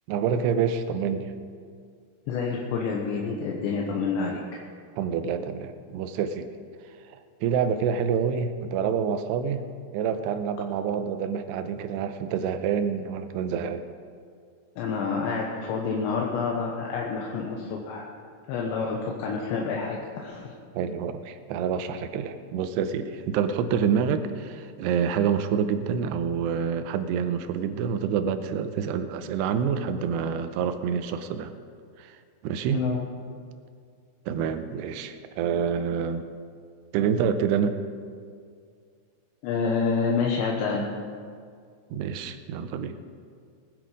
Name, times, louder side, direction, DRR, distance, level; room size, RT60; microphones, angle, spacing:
voice 1, 0.1-1.3 5.0-6.5 7.4-9.6 9.9-13.8 20.7-31.5 32.0-32.2 32.4-32.8 34.3-36.3 36.9-37.8 41.9-43.0, right 7 dB, 80° right, 9 dB, 2.8 m, -27 dB
voice 2, 2.3-4.4 14.8-18.1 18.5-20.6 32.7-33.0 39.4-40.9, left 5 dB, 85° left, -1 dB, 3.3 m, -28 dB
19.5 x 10.5 x 5.0 m, 2.2 s
omnidirectional pair, 5.0 m